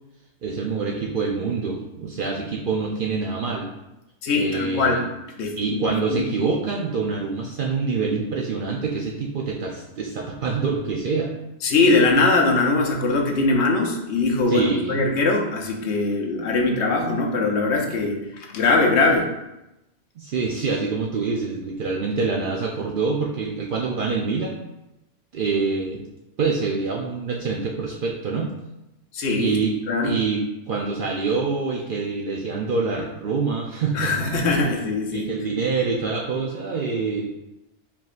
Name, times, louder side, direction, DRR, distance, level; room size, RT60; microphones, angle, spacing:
voice 1, 0.4-3.7 4.3-5.0 5.6-11.3 14.5-15.0 20.2-24.7 25.3-26.0 26.4-28.5 29.4-29.8 30.0-34.1 35.1-37.3, right 4 dB, 60° right, -1 dB, 0.6 m, -26 dB
voice 2, 4.2-5.0 5.4-5.8 6.1-6.3 11.6-19.3 29.1-29.5 29.9-30.2 33.9-35.3, left 3 dB, 70° left, 1 dB, 0.9 m, -21 dB
4.8 x 3.7 x 2.4 m, 0.93 s
omnidirectional pair, 1.3 m